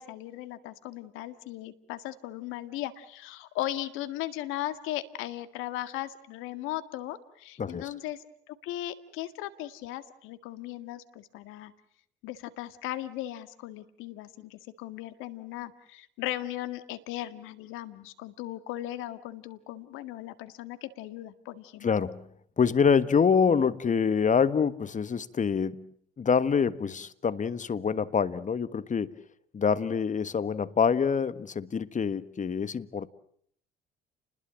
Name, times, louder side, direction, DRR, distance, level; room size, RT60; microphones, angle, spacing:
voice 1, 0.0-11.7 12.2-21.9, left 14 dB, 75° left, 11 dB, 1.9 m, -37 dB
voice 2, 7.6-7.9 21.8-22.2 22.6-25.9 26.2-29.1 29.5-33.1, left 6 dB, 35° left, 14 dB, 1.5 m, -26 dB
29.5 x 21.0 x 7.7 m, 0.65 s
hypercardioid pair, 60°, 21 cm